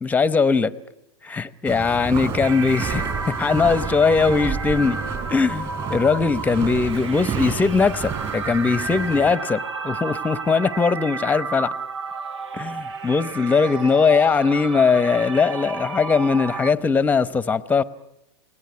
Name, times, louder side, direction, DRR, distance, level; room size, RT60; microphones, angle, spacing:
voice 1, 0.0-0.7 1.2-5.0 5.3-11.7 12.5-17.8, left 5 dB, 10° left, 17 dB, 0.9 m, -20 dB
Walk footsteps, 1.7-9.3, right 6 dB, 30° right, 5.4 m, -30 dB
sound 1, 2.4-16.7, right 4 dB, 90° right, 1.3 m, -32 dB
28.5 x 19.0 x 9.6 m, 0.89 s
hypercardioid pair, 125°, 15 cm